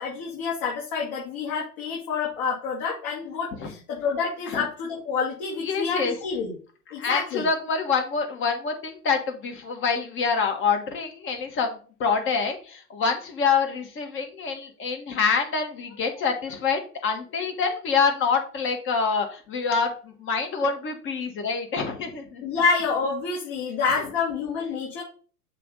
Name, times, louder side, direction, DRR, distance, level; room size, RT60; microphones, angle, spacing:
voice 1, 0.0-6.5 6.9-7.5 22.4-25.0, left 5 dB, 40° left, -4 dB, 2.6 m, -28 dB
voice 2, 5.6-6.2 7.0-22.4, left 5 dB, 25° left, 4 dB, 1.7 m, -26 dB
6.7 x 3.5 x 5.3 m, 0.38 s
figure-of-eight pair, 100°, 47 cm